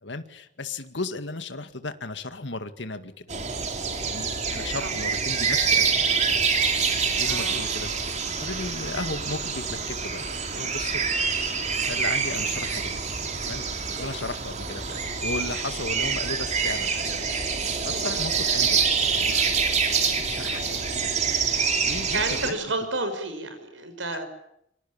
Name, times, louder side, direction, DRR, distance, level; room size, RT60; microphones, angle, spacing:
voice 1, 0.0-3.4 4.0-5.9 7.0-7.9 8.4-10.3 10.5-11.1 11.9-13.1 13.4-13.7 14.0-17.1 17.8-18.8 19.1-19.5 19.9-21.2 21.6-22.5 24.1-24.2, left 3 dB, 70° left, 9 dB, 2.1 m, -35 dB
sound 1, 3.3-22.5, right 5 dB, 40° right, 3.5 m, -26 dB
voice 2, 7.3-7.7 14.0-14.1 17.9-18.1 22.1-24.3, right 2 dB, 90° right, 9 dB, 6.2 m, -31 dB
26.0 x 25.0 x 8.9 m, 0.77 s
head